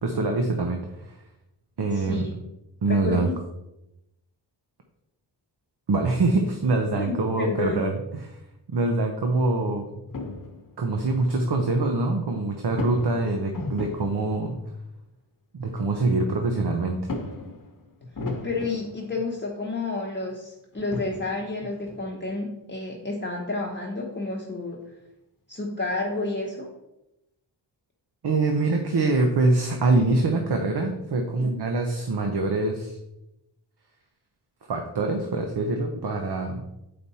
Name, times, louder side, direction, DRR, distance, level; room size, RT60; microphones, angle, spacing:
voice 1, 0.0-1.2 1.8-2.2 2.8-3.3 5.9-8.4 8.7-9.9 10.8-14.6 15.5-17.1 28.2-33.0 34.7-36.6, right 3 dB, 60° right, 4 dB, 0.9 m, -24 dB
voice 2, 1.9-2.4 2.9-3.4 6.9-7.8 18.4-24.8 25.5-26.7, left 3 dB, 25° left, -2 dB, 1.0 m, -30 dB
sound 1, 10.1-10.9 12.7-14.5 15.8-15.9 16.2-16.3 17.0-19.4 20.3-20.4 20.7-22.3, left 2 dB, 45° left, 1.0 m, -36 dB
7.8 x 5.2 x 4.1 m, 0.90 s
wide cardioid pair, 100°, 44 cm